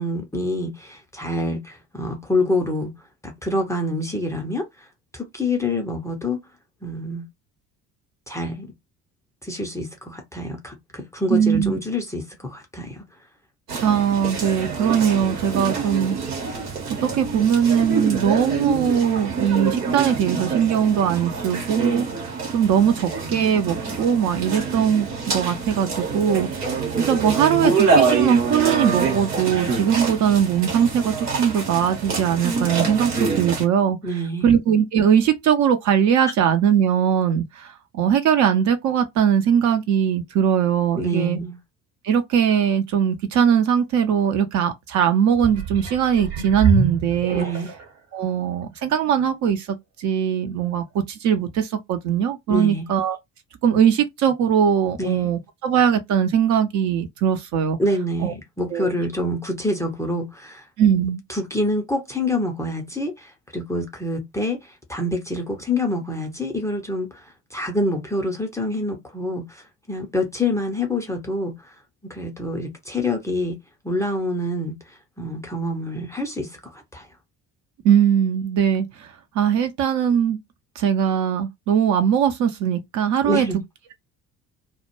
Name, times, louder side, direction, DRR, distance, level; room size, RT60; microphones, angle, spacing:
voice 1, 0.0-2.9 3.2-4.9 5.1-6.4 6.8-7.3 8.3-8.7 9.4-13.0 34.0-34.5 40.9-41.6 47.3-47.7 52.5-52.9 55.0-55.3 57.8-60.6 61.3-71.8 72.0-73.6 73.8-77.1 83.2-83.6, left 1 dB, 5° left, 0.5 m, -26 dB
voice 2, 11.3-11.8 13.8-16.2 17.0-33.1 33.4-34.0 34.4-41.4 42.0-47.5 48.1-53.2 53.6-57.8 58.2-58.3 58.7-58.9 60.8-61.2 77.8-80.4 80.8-83.5, right 8 dB, 40° right, 0.5 m, -20 dB
sound 1, 13.7-33.6, right 4 dB, 80° right, 1.0 m, -26 dB
sound 2, 45.3-48.0 48.6-48.7, right 4 dB, 65° right, 1.1 m, -25 dB
2.1 x 2.1 x 2.9 m
figure-of-eight pair, 55°, 46 cm